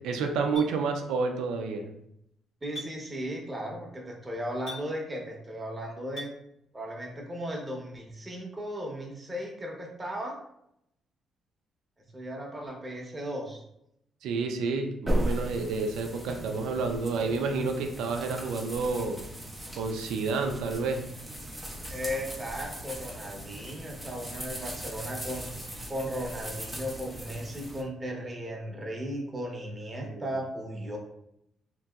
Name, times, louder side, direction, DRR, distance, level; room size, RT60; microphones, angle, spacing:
voice 1, 0.0-1.9 14.2-19.2 19.7-21.0 30.0-30.2, right 4 dB, 85° right, 5 dB, 0.4 m, -29 dB
Chink clink, 0.6-0.7 2.7-2.9 4.7-4.9 6.2-6.3, left 1 dB, 80° left, 1.2 m, -39 dB
voice 2, 2.6-6.3 6.7-10.3 12.1-13.6 21.9-25.5 25.9-31.0, equal, 20° right, -1 dB, 0.8 m, -36 dB
sound 1, 15.1-27.8, equal, 5° right, 0.5 m, -37 dB
2.9 x 2.8 x 2.3 m, 0.78 s
cardioid pair, 90°, 0 cm